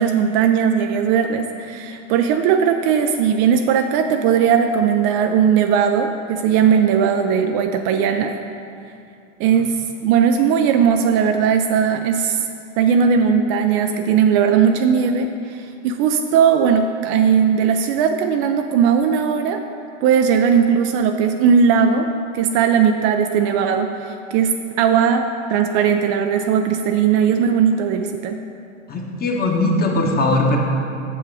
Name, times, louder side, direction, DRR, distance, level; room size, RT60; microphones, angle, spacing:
voice 1, 0.0-8.4 9.4-12.5 12.8-19.6 20.0-28.4, right 7 dB, 40° right, 6 dB, 0.4 m, -18 dB
voice 2, 28.9-30.6, left 2 dB, 25° left, 0 dB, 1.2 m, -19 dB
7.7 x 6.5 x 4.7 m, 2.5 s
hypercardioid pair, 110°, 37 cm